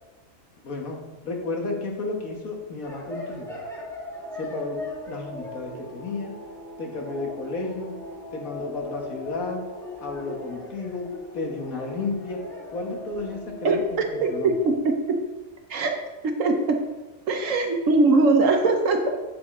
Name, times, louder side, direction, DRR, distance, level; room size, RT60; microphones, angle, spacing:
voice 1, 0.6-3.5 4.3-6.4 6.8-8.0 8.3-9.7 10.0-12.4 12.7-14.6, left 3 dB, 85° left, 1 dB, 1.9 m, -32 dB
sound 1, 2.8-14.7, left 1 dB, ahead, 2.3 m, -39 dB
voice 2, 13.6-15.2 15.7-15.9 16.2-16.8 17.3-19.1, right 3 dB, 70° right, 3 dB, 1.2 m, -21 dB
8.3 x 7.5 x 4.1 m, 1.2 s
omnidirectional pair, 1.4 m